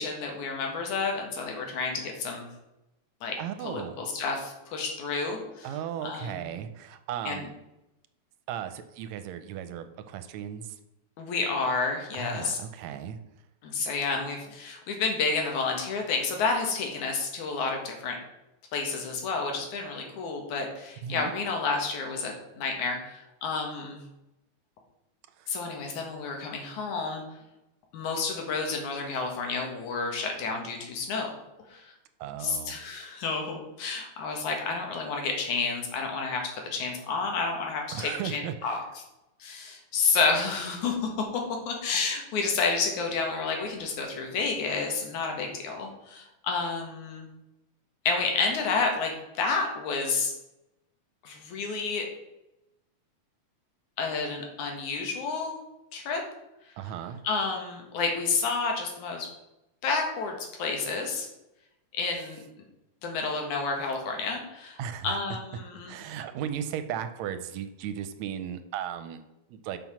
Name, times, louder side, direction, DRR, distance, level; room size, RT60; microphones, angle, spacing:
voice 1, 0.0-2.5 3.2-3.4 3.6-5.7 6.0-6.4 7.3-7.4 11.2-12.6 13.6-18.2 18.7-24.0 25.5-27.2 27.9-31.3 31.7-31.9 32.4-38.8 39.4-47.3 48.0-50.3 51.2-52.1 54.0-55.6 55.9-56.2 57.2-59.3 59.8-61.3 61.9-62.4 63.0-64.8 65.0-66.0, left 4 dB, 90° left, 2 dB, 3.0 m, -30 dB
voice 2, 3.4-4.0 5.6-7.5 8.5-10.8 12.1-13.2 21.0-21.3 25.4-25.6 32.2-32.8 37.9-38.8 56.8-57.2 64.8-65.2 65.9-69.2 69.5-69.8, right 9 dB, 80° right, 10 dB, 1.8 m, -36 dB
7.1 x 5.8 x 6.0 m, 0.90 s
omnidirectional pair, 3.3 m